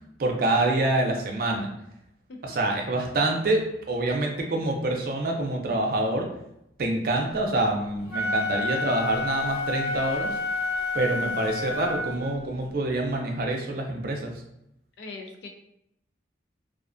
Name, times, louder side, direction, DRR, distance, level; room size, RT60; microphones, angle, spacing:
voice 1, 0.2-1.7 2.4-6.3 6.8-10.3 10.9-14.3, right 2 dB, 50° right, 1 dB, 0.4 m, -26 dB
Wind instrument woodwind instrument, 8.0-12.4, left 3 dB, 50° left, 1.0 m, -29 dB
voice 2, 15.0-15.5, left 3 dB, 70° left, 3 dB, 0.4 m, -40 dB
2.4 x 2.2 x 2.4 m, 0.79 s
head